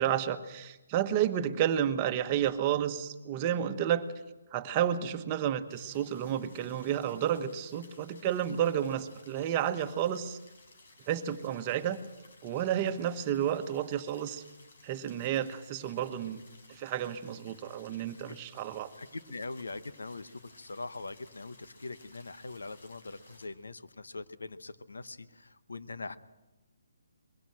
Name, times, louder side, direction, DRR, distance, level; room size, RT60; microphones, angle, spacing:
voice 1, 0.0-4.1 4.5-10.4 11.1-12.0 12.4-14.4 14.8-16.4 16.7-18.9, right 10 dB, 25° right, 8 dB, 1.2 m, -31 dB
sound 1, 5.7-23.5, left 2 dB, 65° left, 6.1 m, -58 dB
voice 2, 19.0-26.2, left 3 dB, 85° left, 12 dB, 1.1 m, -42 dB
22.0 x 17.0 x 7.8 m, 1.0 s
hypercardioid pair, 150°, 0 cm